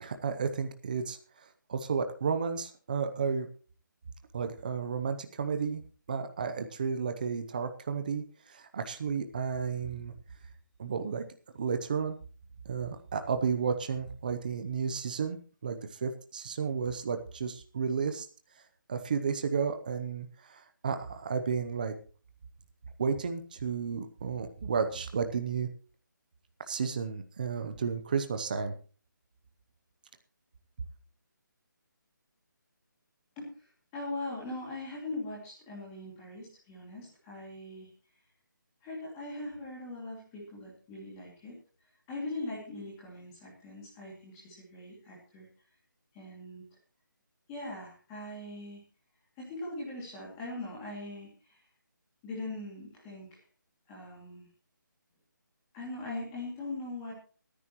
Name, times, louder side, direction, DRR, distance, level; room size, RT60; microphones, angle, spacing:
voice 1, 0.0-1.2 1.7-3.5 4.3-5.8 6.1-10.1 10.8-11.3 11.6-12.2 12.6-18.3 18.9-21.9 23.0-25.7 26.7-28.7, right 6 dB, 25° right, 8 dB, 0.8 m, -32 dB
voice 2, 33.4-33.7 33.9-37.9 38.8-41.6 42.1-45.5 46.1-46.6 47.5-48.8 49.4-51.6 52.2-53.4 53.9-54.5 55.7-57.1, left 2 dB, 10° left, -4 dB, 2.5 m, -41 dB
21.5 x 9.9 x 3.1 m, 0.39 s
hypercardioid pair, 175°, 11 cm